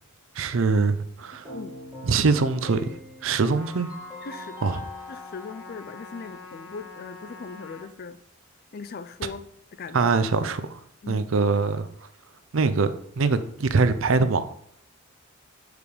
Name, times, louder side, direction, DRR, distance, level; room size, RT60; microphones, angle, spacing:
voice 1, 0.3-1.5 2.0-3.9 4.6-4.8 9.9-10.8 11.1-11.9 12.5-14.5, right 4 dB, 70° right, 0.5 m, -23 dB
Keyboard (musical), 1.4-6.4, left 2 dB, 10° right, 2.7 m, -42 dB
Trumpet, 3.5-7.9, left 2 dB, 70° left, 2.0 m, -45 dB
voice 2, 4.2-4.6 5.1-8.2 8.7-9.5 9.8-10.1 11.0-11.2, left 5 dB, 45° left, 0.4 m, -39 dB
5.2 x 4.9 x 4.9 m
head